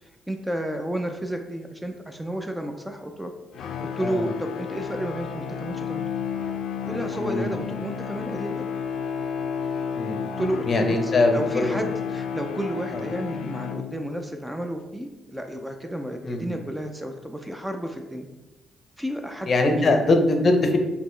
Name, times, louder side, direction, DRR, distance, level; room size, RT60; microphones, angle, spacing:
voice 1, 0.0-3.3 3.6-6.0 6.8-8.7 10.4-18.3 19.0-19.5 19.8-19.9, right 1 dB, 5° right, 4 dB, 0.4 m, -32 dB
sound 1, 3.5-14.3, left 7 dB, 75° left, 0.3 m, -31 dB
voice 2, 7.2-7.5 9.9-10.2 10.7-11.8 12.9-13.0 16.2-16.6 19.5-20.8, left 2 dB, 45° left, 4 dB, 0.6 m, -22 dB
4.2 x 2.9 x 3.2 m, 1.0 s
cardioid pair, 90°, 0 cm